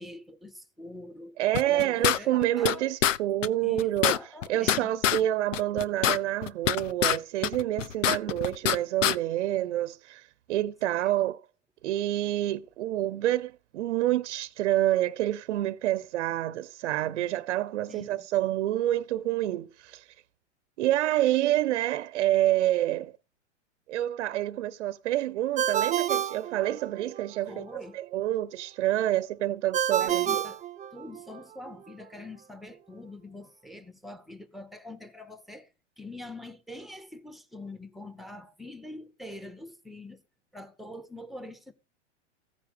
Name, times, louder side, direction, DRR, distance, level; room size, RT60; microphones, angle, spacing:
voice 1, 0.0-1.4 1.7-2.9 3.6-5.0 17.9-18.1 27.5-28.0 29.1-29.2 30.0-30.6 30.9-35.7 36.0-40.2 40.5-41.7, left 1 dB, ahead, 2.0 m, -44 dB
voice 2, 1.4-4.1 4.5-11.4 11.8-20.1 20.8-23.1 23.9-30.4, right 14 dB, 65° right, 1.0 m, -28 dB
sound 1, 1.5-2.8 3.0-3.2 3.4-3.5 3.8-5.2 5.5-7.2 7.4-8.8 9.0-9.2, left 10 dB, 80° left, 1.0 m, -25 dB
Ringtone, 25.6-27.2 29.7-31.4, right 10 dB, 20° right, 1.1 m, -29 dB
16.0 x 9.5 x 5.2 m
hypercardioid pair, 120°, 37 cm